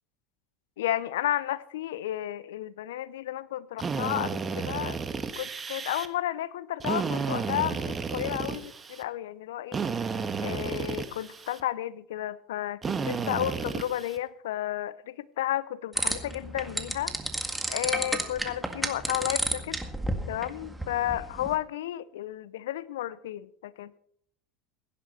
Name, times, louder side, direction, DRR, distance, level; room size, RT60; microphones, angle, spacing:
voice 1, 0.8-5.0 5.4-9.8 10.4-17.1 17.7-19.9 20.3-24.0, left 13 dB, 75° left, 0.6 m, -32 dB
Drill, 3.8-6.1 6.8-9.0 9.7-11.6 12.8-14.2, right 5 dB, 25° right, 1.3 m, -32 dB
sound 1, 16.0-21.6, right 1 dB, 5° right, 1.8 m, -32 dB
16.5 x 10.5 x 4.3 m
hypercardioid pair, 85°, 0 cm